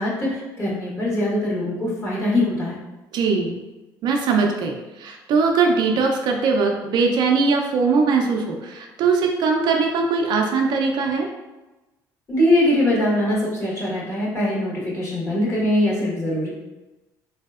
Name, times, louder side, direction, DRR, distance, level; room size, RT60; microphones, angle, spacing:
voice 1, 0.0-2.7 12.3-16.5, left 1 dB, 30° left, -6 dB, 1.2 m, -22 dB
voice 2, 3.1-3.6 4.0-11.3, right 4 dB, 60° right, 1 dB, 0.4 m, -21 dB
3.1 x 2.7 x 2.4 m, 1.1 s
cardioid pair, 95°, 8 cm